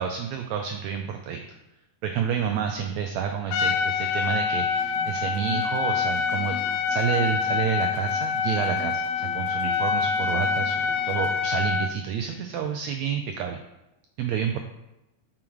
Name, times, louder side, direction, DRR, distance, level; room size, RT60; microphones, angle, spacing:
voice 1, 0.0-1.4 2.0-13.6 14.2-14.6, right 8 dB, 85° right, 5 dB, 1.6 m, -29 dB
Trumpet, 3.5-11.9, left 6 dB, 90° left, 2.2 m, -26 dB
sound 1, 4.7-11.4, left 3 dB, 65° left, 1.0 m, -44 dB
7.6 x 4.9 x 4.6 m, 0.94 s
omnidirectional pair, 3.7 m